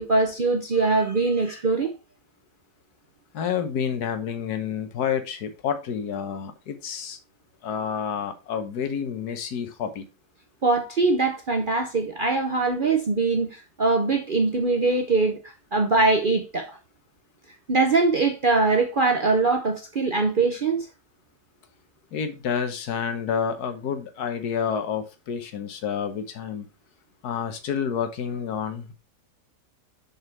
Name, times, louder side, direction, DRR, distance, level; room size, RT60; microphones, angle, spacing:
voice 1, 0.0-1.9 10.6-16.8 17.7-20.9, right 3 dB, 45° right, 0.7 m, -22 dB
voice 2, 3.3-7.2 7.6-10.0 22.1-26.6 27.2-28.9, left 7 dB, 75° left, 1.6 m, -29 dB
6.8 x 4.4 x 4.4 m
omnidirectional pair, 1.7 m